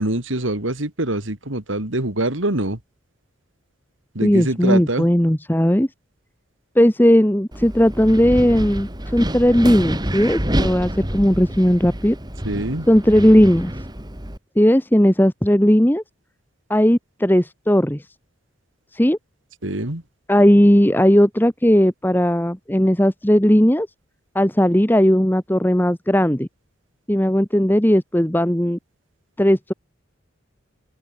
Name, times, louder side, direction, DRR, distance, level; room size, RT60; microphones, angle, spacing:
voice 1, 0.0-2.8 4.2-5.1 12.4-12.9 19.6-20.0, right 1 dB, 85° right, 3.7 m, -24 dB
voice 2, 4.2-5.9 6.7-12.2 12.9-13.7 14.6-16.0 16.7-18.0 18.9-19.2 20.3-23.9 24.3-26.5 27.1-28.8 29.4-29.7, equal, 10° left, 1.2 m, -16 dB
Wind, 7.5-14.4, equal, 20° right, 4.1 m, -27 dB
open air
head